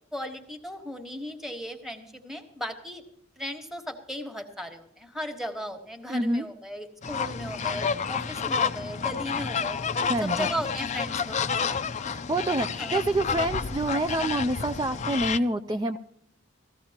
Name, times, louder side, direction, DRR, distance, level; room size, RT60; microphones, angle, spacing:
voice 1, 0.1-3.0 3.4-9.8 10.2-11.4 12.8-13.0, equal, ahead, 6 dB, 1.3 m, -36 dB
voice 2, 6.1-6.5 10.1-10.5 12.0-16.0, right 1 dB, 20° right, 7 dB, 0.4 m, -27 dB
sound 1, 7.0-15.4, left 6 dB, 35° left, 0.5 m, -30 dB
19.0 x 14.5 x 2.9 m, 0.76 s
head